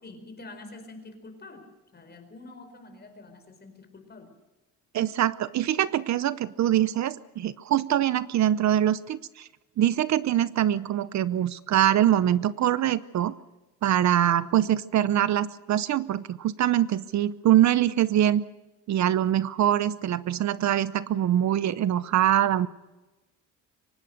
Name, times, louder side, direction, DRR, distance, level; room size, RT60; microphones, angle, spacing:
voice 1, 0.0-1.6 1.9-4.3, left 2 dB, 30° left, 7 dB, 5.0 m, -46 dB
voice 2, 4.9-9.5 9.8-13.3 13.8-18.4 18.9-22.7, right 11 dB, 60° right, 16 dB, 0.8 m, -24 dB
24.0 x 19.5 x 6.6 m, 1.1 s
cardioid pair, 130°, 32 cm